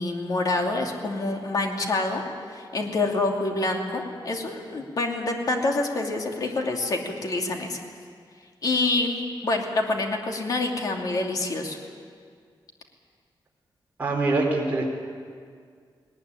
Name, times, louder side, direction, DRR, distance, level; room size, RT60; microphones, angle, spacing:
voice 1, 0.0-7.8 8.6-11.8, left 2 dB, 50° left, 1 dB, 2.7 m, -27 dB
voice 2, 14.0-14.8, right 2 dB, 20° right, -3 dB, 4.1 m, -24 dB
19.5 x 19.5 x 9.8 m, 2.1 s
wide cardioid pair, 170°, 8 cm